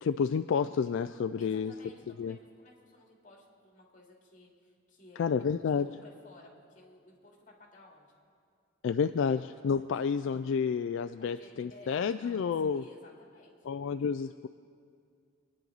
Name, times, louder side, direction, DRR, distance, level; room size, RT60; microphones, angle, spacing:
voice 1, 0.0-1.7 2.2-2.4 5.2-5.9 8.8-12.8 13.7-14.5, left 6 dB, 70° left, 10 dB, 0.3 m, -30 dB
voice 2, 1.4-5.4 5.7-8.1 9.2-9.4 9.9-10.0 11.2-13.7, left 1 dB, 40° left, -1 dB, 2.4 m, -56 dB
24.5 x 9.8 x 4.0 m, 2.3 s
head